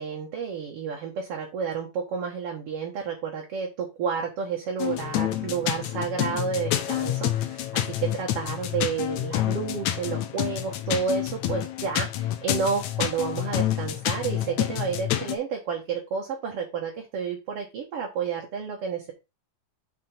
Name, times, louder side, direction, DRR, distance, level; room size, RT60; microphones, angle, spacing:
voice 1, 0.0-19.1, right 6 dB, 55° right, 0 dB, 1.9 m, -31 dB
sound 1, 4.8-15.4, left 12 dB, 75° left, 2.0 m, -28 dB
5.9 x 5.8 x 4.4 m, 0.26 s
omnidirectional pair, 3.8 m